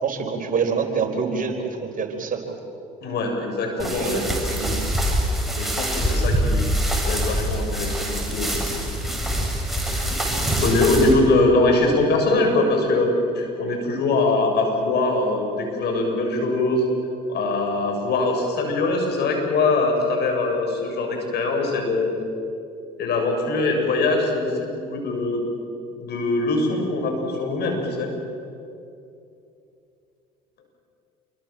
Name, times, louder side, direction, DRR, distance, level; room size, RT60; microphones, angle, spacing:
voice 1, 0.0-1.5 2.0-2.4 3.8-4.8, right 5 dB, 45° right, 4 dB, 4.5 m, -26 dB
voice 2, 3.0-4.2 5.6-6.7 7.0-8.5 10.6-16.9 17.3-22.1 23.0-25.5 26.0-28.1, left 2 dB, 60° left, 2 dB, 7.6 m, -22 dB
sound 1, 3.8-11.1, equal, ahead, 7.2 m, -24 dB
27.5 x 24.0 x 7.6 m, 2.6 s
hypercardioid pair, 65°, 19 cm